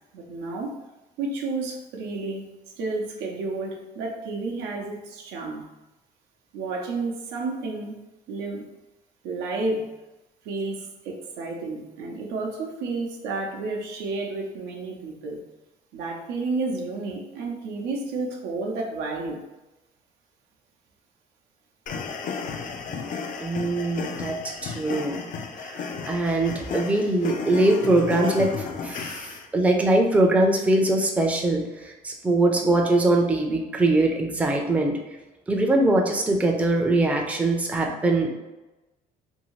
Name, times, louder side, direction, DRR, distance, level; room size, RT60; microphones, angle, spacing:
voice 1, 0.1-0.8 1.2-2.5 2.8-5.7 6.5-8.0 8.3-8.7 9.2-9.9 10.4-15.4 15.9-19.4, right 3 dB, 90° right, 0 dB, 0.6 m, -31 dB
sound 1, 21.9-29.5, left 5 dB, 50° left, 0.4 m, -33 dB
voice 2, 23.4-25.2 25.6-34.9 35.5-38.3, right 2 dB, 10° right, 1 dB, 0.4 m, -22 dB
2.7 x 2.7 x 3.0 m, 1.1 s
cardioid pair, 110°, 17 cm